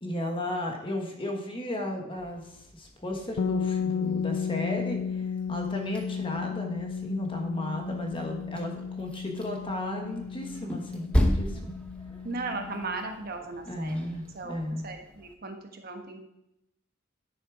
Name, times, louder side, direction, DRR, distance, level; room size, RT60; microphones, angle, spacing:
voice 1, 0.0-5.2 5.5-11.7 13.7-14.9, left 1 dB, 25° left, 1 dB, 1.4 m, -34 dB
sound 1, 2.1-15.3, equal, 5° left, 0.9 m, -36 dB
sound 2, 3.4-13.1, left 6 dB, 85° left, 0.3 m, -34 dB
voice 2, 12.2-14.6 14.8-16.2, right 3 dB, 50° right, 4 dB, 1.2 m, -37 dB
9.9 x 7.0 x 4.7 m, 0.83 s
head